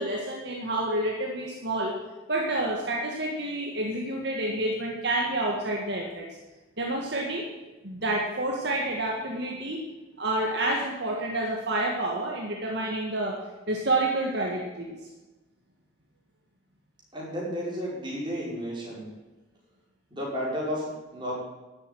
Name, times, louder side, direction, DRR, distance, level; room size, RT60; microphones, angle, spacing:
voice 1, 0.0-2.0 2.3-6.3 6.8-7.5 7.8-9.8 10.2-13.4 13.7-15.0, right 1 dB, 55° right, -1 dB, 1.9 m, -29 dB
voice 2, 17.1-19.0 20.1-21.3, equal, 25° right, -5 dB, 5.4 m, -32 dB
12.5 x 8.1 x 9.3 m, 1.1 s
head